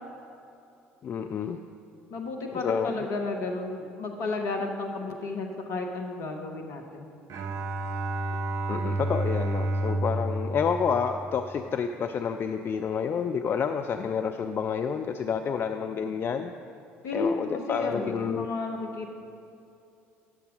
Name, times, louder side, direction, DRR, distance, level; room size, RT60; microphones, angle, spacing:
voice 1, 1.0-1.6 2.5-3.1 8.7-16.5 17.1-18.5, left 6 dB, 35° left, 6 dB, 0.4 m, -29 dB
voice 2, 2.1-7.1 17.0-17.3 17.7-19.1, left 3 dB, 50° left, 2 dB, 0.8 m, -32 dB
Bowed string instrument, 7.3-11.7, right 1 dB, 50° right, 0.6 m, -30 dB
9.6 x 6.8 x 5.0 m, 2.6 s
figure-of-eight pair, 60°, 7 cm